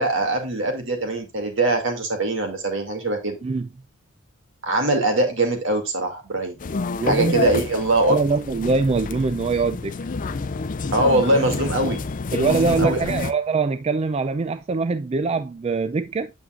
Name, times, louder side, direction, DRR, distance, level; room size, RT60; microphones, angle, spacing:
voice 1, 0.0-3.4 4.6-6.6 7.0-8.2 10.9-12.0 12.4-13.0, right 2 dB, 65° right, 2.4 m, -22 dB
sound 1, 6.6-13.3, left 4 dB, 40° left, 0.5 m, -28 dB
voice 2, 7.0-7.5 8.1-10.0 12.3-16.3, right 4 dB, 30° right, 0.3 m, -23 dB
8.7 x 7.1 x 2.4 m
head